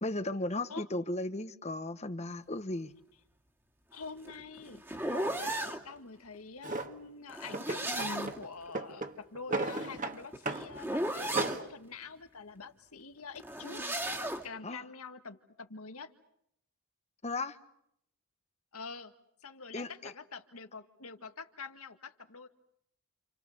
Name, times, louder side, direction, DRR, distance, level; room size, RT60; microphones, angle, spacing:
voice 1, 0.0-2.9 14.6-14.8 17.2-17.6 19.7-20.1, left 2 dB, 30° left, 1.1 m, -35 dB
voice 2, 3.9-14.0 14.4-16.1 18.7-19.1 19.4-22.5, left 4 dB, 80° left, 1.8 m, -46 dB
sound 1, 4.0-5.8 7.3-8.5 9.9-11.6 13.3-14.5, right 1 dB, 10° right, 2.2 m, -35 dB
Drawer open or close, 6.6-6.9 7.5-8.4 8.7-10.2 10.5-10.7 11.0-11.7, right 2 dB, 35° right, 1.8 m, -35 dB
29.5 x 28.5 x 6.6 m
head